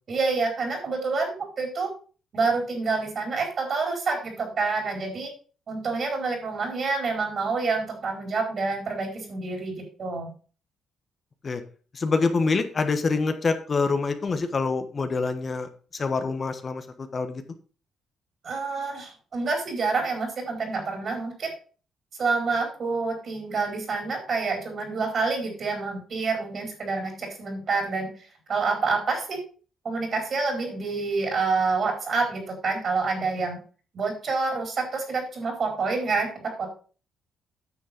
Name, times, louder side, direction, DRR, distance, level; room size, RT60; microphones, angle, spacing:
voice 1, 0.1-1.9 2.3-5.3 5.7-9.7 10.0-10.3 18.4-21.5 22.2-28.1 28.5-29.4 29.8-33.6 33.9-36.3 36.6-36.7, right 4 dB, 50° right, 3 dB, 4.5 m, -27 dB
voice 2, 11.9-17.4, left 4 dB, 40° left, 8 dB, 1.2 m, -26 dB
9.4 x 6.5 x 5.2 m, 0.39 s
cardioid pair, 90°, 0 cm